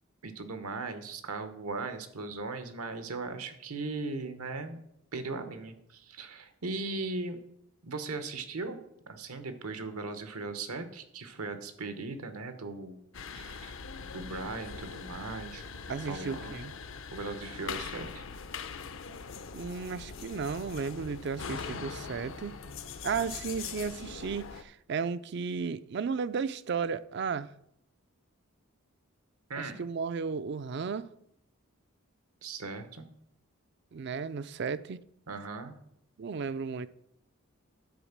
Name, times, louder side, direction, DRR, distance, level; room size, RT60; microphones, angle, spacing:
voice 1, 0.2-4.8 5.1-7.4 7.8-13.0 13.3-13.8 14.1-15.6 16.1-16.5 17.1-18.2 29.5-29.8 32.4-33.1 35.3-35.8, right 3 dB, 85° right, 1.0 m, -38 dB
sound 1, 13.1-24.6, left 5 dB, 60° left, 0.6 m, -42 dB
voice 2, 15.9-16.7 19.5-22.5 23.0-27.5 29.6-31.1 33.9-35.0 36.2-36.9, right 5 dB, 50° right, 0.4 m, -34 dB
10.0 x 4.3 x 7.2 m
head